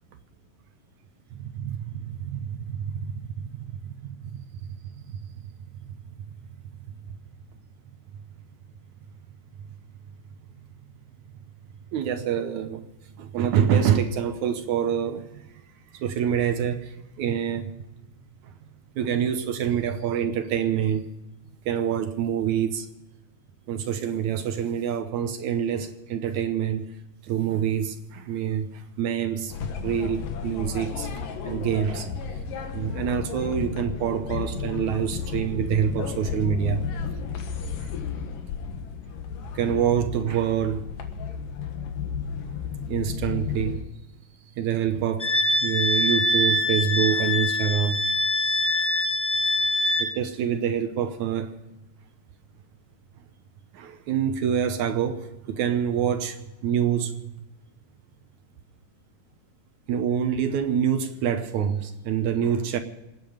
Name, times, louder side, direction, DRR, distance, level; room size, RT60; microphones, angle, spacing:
voice 1, 1.4-3.5 3.8-4.5 5.0-5.1 11.9-12.9 13.2-15.4 15.9-17.7 19.0-21.1 21.7-22.9 23.7-26.9 27.2-29.5 29.8-32.2 32.7-36.8 37.8-37.9 39.5-40.8 42.9-43.8 44.6-45.3 45.6-48.1 50.0-51.5 53.7-57.4 59.9-62.8, right 8 dB, 70° right, 2.1 m, -26 dB
sound 1, 29.5-43.8, left 6 dB, 80° left, 3.1 m, -33 dB
Wind instrument woodwind instrument, 45.2-50.1, left 1 dB, 5° left, 1.8 m, -24 dB
27.5 x 9.2 x 5.0 m
omnidirectional pair, 3.9 m